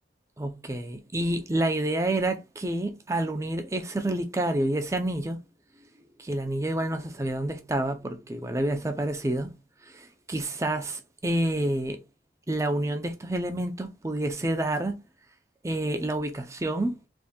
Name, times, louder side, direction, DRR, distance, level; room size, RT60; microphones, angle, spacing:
voice 1, 0.4-5.4 6.2-9.5 9.8-12.0 12.5-15.0 15.6-17.0, right 1 dB, 15° right, 0.5 m, -28 dB
3.5 x 2.6 x 3.9 m
head